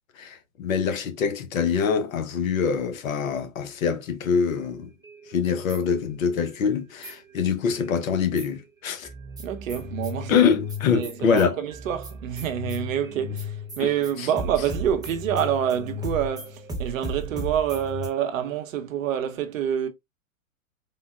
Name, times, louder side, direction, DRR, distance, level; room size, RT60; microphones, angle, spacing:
voice 1, 0.1-4.9 5.3-9.1 10.3-11.6 13.8-13.9 14.2-14.3, left 6 dB, 70° left, 0.9 m, -24 dB
sound 1, 4.5-6.6 7.0-8.6 9.0-18.1, left 1 dB, 10° right, 0.9 m, -36 dB
voice 2, 9.4-10.4 10.9-19.9, right 9 dB, 70° right, 0.8 m, -27 dB
3.7 x 2.1 x 2.3 m
hypercardioid pair, 110°, 42 cm